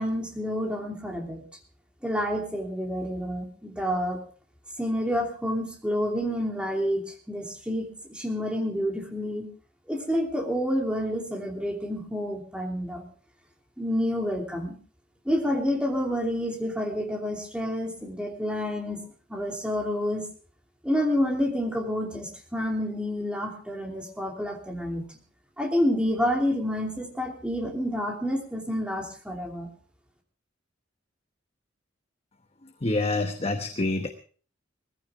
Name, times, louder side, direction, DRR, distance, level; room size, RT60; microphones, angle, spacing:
voice 1, 0.0-1.4 2.0-4.2 4.8-9.5 9.9-13.0 13.8-14.8 15.2-19.0 19.3-20.2 20.8-25.0 25.6-29.7, equal, 5° right, 1 dB, 3.0 m, -29 dB
voice 2, 32.8-34.1, left 2 dB, 30° left, 6 dB, 1.0 m, -26 dB
20.0 x 15.0 x 3.6 m, 0.41 s
head